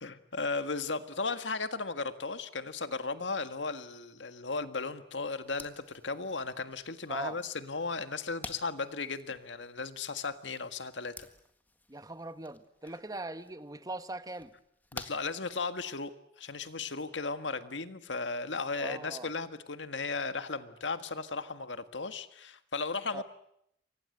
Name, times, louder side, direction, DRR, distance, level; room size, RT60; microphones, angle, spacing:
voice 1, 0.0-11.1 14.9-16.1 16.4-23.2, left 4 dB, 90° left, 1.7 m, -36 dB
sound 1, 5.4-16.1, left 2 dB, 10° left, 1.7 m, -52 dB
voice 2, 7.1-7.4 11.9-14.5 18.8-19.3 23.1-23.2, right 2 dB, 20° right, 1.2 m, -41 dB
28.5 x 24.5 x 8.0 m
head